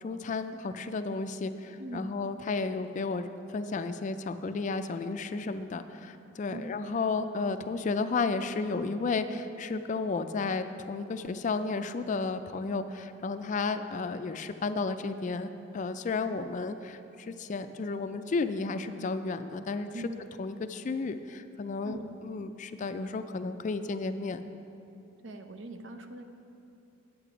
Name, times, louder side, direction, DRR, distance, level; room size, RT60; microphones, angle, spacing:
voice 1, 0.0-19.9 20.4-22.0 22.2-24.4, left 4 dB, 40° left, 10 dB, 0.3 m, -33 dB
voice 2, 1.8-2.1 6.5-6.7 19.9-20.1 21.8-22.1 25.2-26.2, right 1 dB, 65° right, 6 dB, 0.7 m, -41 dB
8.6 x 8.3 x 5.0 m, 2.8 s
head